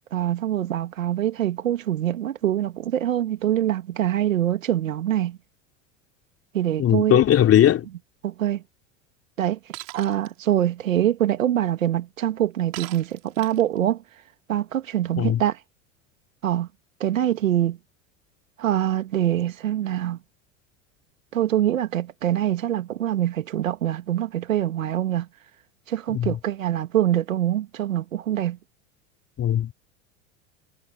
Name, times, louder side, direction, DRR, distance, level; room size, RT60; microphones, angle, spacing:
voice 1, 0.1-5.4 6.5-7.2 8.2-8.6 9.4-9.6 9.9-14.0 14.5-15.6 16.4-16.7 17.0-17.8 18.6-20.2 21.3-25.3 25.9-28.6, right 12 dB, 80° right, 2.7 m, -24 dB
voice 2, 6.8-7.8 15.2-15.4 26.1-26.4 29.4-29.7, left 11 dB, 35° left, 3.3 m, -19 dB
Shatter, 9.7-10.3 12.7-13.8, right 23 dB, 55° right, 4.9 m, -38 dB
hypercardioid pair, 85°, 39 cm